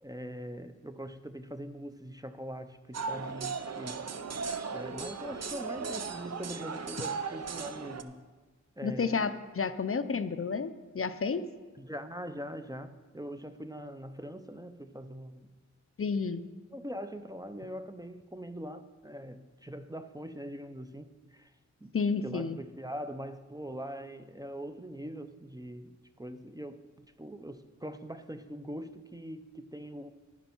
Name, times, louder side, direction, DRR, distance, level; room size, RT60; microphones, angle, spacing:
voice 1, 0.0-4.0 4.7-8.2 8.8-9.3 11.8-15.5 16.7-21.5 21.8-21.9 22.2-30.1, equal, 15° right, 9 dB, 0.5 m, -42 dB
sound 1, 2.9-8.0, right 5 dB, 55° right, 0.7 m, -37 dB
voice 2, 8.8-11.5 16.0-16.5 21.9-22.6, left 5 dB, 45° left, 12 dB, 0.5 m, -31 dB
11.0 x 11.0 x 4.4 m, 1.3 s
wide cardioid pair, 95°, 30 cm